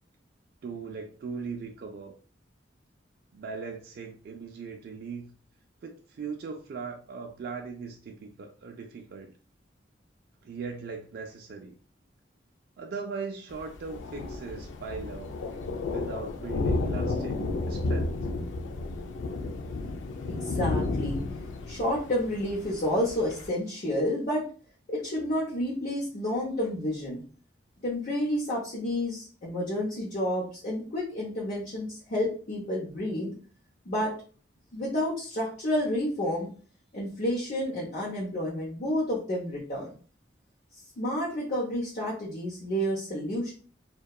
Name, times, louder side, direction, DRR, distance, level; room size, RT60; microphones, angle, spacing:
voice 1, 0.6-2.1 3.3-5.3 5.8-9.3 10.4-11.8 12.8-15.3 15.9-18.2, right 5 dB, 55° right, 2 dB, 0.3 m, -39 dB
Thunder, 13.5-23.5, left 3 dB, 90° left, 0.4 m, -32 dB
voice 2, 20.3-21.2 21.6-24.4 24.9-27.2 27.8-33.3 33.8-34.1 34.7-36.5 36.9-39.9 41.0-43.5, left 1 dB, 45° left, -5 dB, 0.6 m, -30 dB
2.8 x 2.1 x 2.2 m, 0.40 s
head